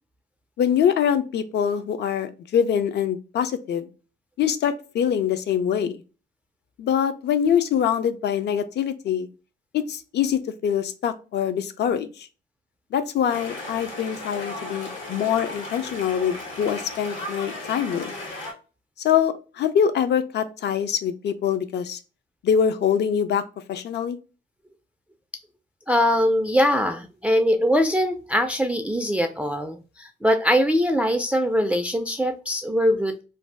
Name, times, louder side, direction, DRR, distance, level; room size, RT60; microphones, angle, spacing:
voice 1, 0.6-3.9 4.4-6.0 6.8-9.3 9.7-12.3 12.9-18.2 19.0-22.0 22.4-23.4 23.7-24.2, left 8 dB, 60° left, 10 dB, 0.5 m, -24 dB
sound 1, 13.3-18.5, left 1 dB, 75° left, 1.4 m, -35 dB
voice 2, 25.9-33.2, equal, 5° right, 5 dB, 0.3 m, -22 dB
2.6 x 2.2 x 3.2 m, 0.34 s
cardioid pair, 90°, 20 cm